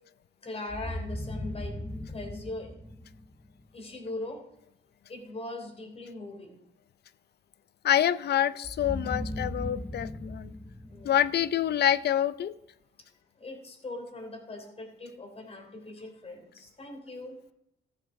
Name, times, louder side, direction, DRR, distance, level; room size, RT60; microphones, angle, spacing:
voice 1, 0.4-2.7 3.7-4.5 5.1-6.6 10.9-11.2 13.4-17.4, left 2 dB, 30° left, 3 dB, 3.2 m, -41 dB
sound 1, 0.7-3.7 8.6-11.9, left 1 dB, 10° left, 0.6 m, -38 dB
voice 2, 7.8-10.5 11.0-12.5, left 10 dB, 55° left, 16 dB, 0.5 m, -26 dB
14.0 x 6.8 x 4.6 m, 0.82 s
cardioid pair, 90°, 20 cm